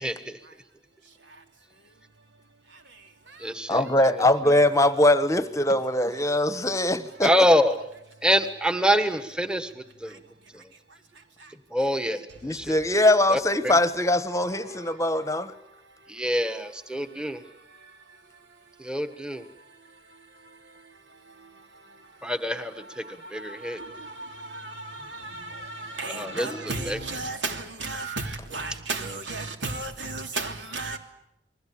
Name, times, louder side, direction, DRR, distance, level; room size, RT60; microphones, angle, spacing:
voice 1, 0.0-0.4 3.4-3.8 7.2-7.7 8.2-10.1 11.7-12.8 13.3-13.7 16.1-17.4 18.8-19.4 22.2-23.0 23.3-23.8 26.1-26.5 26.9-27.0, equal, 5° right, 1.4 m, -25 dB
voice 2, 3.7-7.3 12.4-15.5 26.3-26.9, left 1 dB, 15° left, 1.1 m, -22 dB
voice 3, 26.0-27.5 27.8-28.2 28.5-31.0, right 3 dB, 85° right, 3.1 m, -32 dB
29.0 x 21.0 x 8.7 m
head